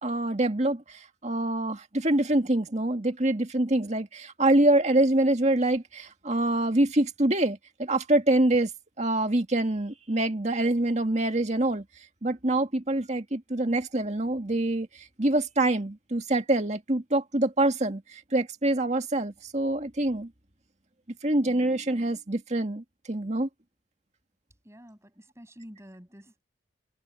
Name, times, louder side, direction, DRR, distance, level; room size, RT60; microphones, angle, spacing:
voice 1, 0.0-8.7 9.0-11.9 12.2-20.3 21.2-23.5, right 1 dB, 40° right, 1.9 m, -25 dB
voice 2, 24.6-26.4, equal, 15° right, 6.9 m, -49 dB
head